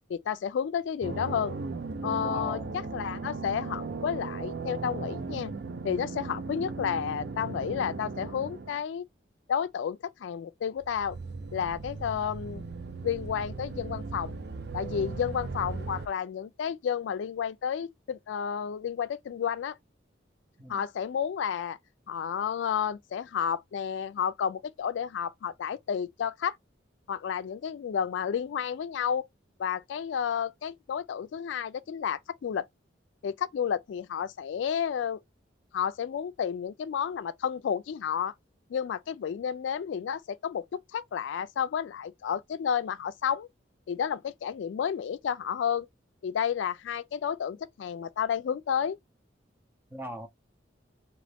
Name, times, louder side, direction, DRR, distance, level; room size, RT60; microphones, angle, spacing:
voice 1, 0.1-1.6 2.0-2.6 2.9-5.5 5.8-9.0 9.5-11.2 11.5-12.6 13.0-14.4 14.7-19.8 20.7-21.8 22.1-26.6 27.1-29.2 29.6-32.6 33.2-35.2 35.7-38.3 38.7-43.5 43.9-45.9 46.2-49.0, left 8 dB, 70° left, 0.3 m, -31 dB
sound 1, 1.0-8.8 10.8-16.1, right 4 dB, 60° right, 0.5 m, -37 dB
voice 2, 2.2-2.7 14.9-15.2 20.6-20.9 49.9-50.3, right 1 dB, 10° right, 0.6 m, -40 dB
3.8 x 2.9 x 3.4 m
head